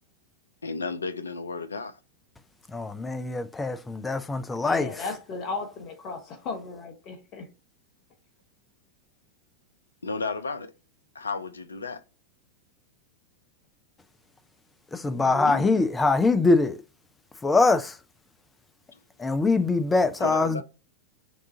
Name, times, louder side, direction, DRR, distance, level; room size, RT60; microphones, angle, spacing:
voice 1, 0.6-2.0 10.0-10.7 11.1-12.0 20.2-20.6, left 4 dB, 75° left, 0.5 m, -33 dB
voice 2, 2.7-4.9 14.9-16.8 17.4-18.0 19.2-20.6, left 3 dB, 10° left, 0.5 m, -23 dB
voice 3, 4.6-7.5 15.1-15.7, left 4 dB, 35° left, 1.1 m, -35 dB
6.1 x 2.4 x 2.7 m
figure-of-eight pair, 90°, 0 cm